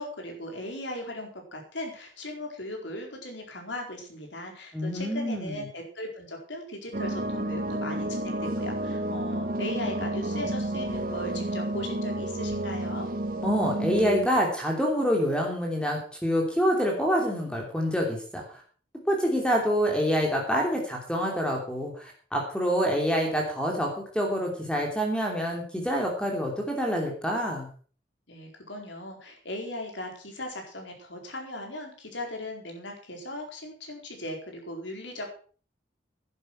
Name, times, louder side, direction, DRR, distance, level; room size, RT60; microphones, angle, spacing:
voice 1, 0.0-13.1 28.3-35.3, left 1 dB, 80° left, 2 dB, 4.5 m, -38 dB
voice 2, 4.7-5.6 13.4-18.6 19.1-27.7, equal, 5° left, 0 dB, 2.9 m, -27 dB
sound 1, 6.9-14.3, right 1 dB, 50° right, 1.3 m, -30 dB
11.5 x 11.0 x 6.0 m, 0.42 s
head